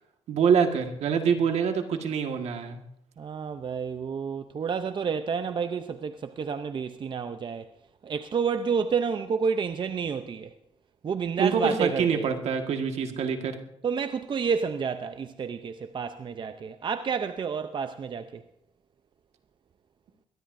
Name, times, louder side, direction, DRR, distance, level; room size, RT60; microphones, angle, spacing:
voice 1, 0.3-2.8 11.4-13.5, right 6 dB, 75° right, 1.7 m, -25 dB
voice 2, 3.2-7.7 8.0-10.5 11.0-12.3 13.8-18.4, right 6 dB, 45° right, 0.6 m, -30 dB
21.5 x 18.0 x 2.7 m
cardioid pair, 90°, 11 cm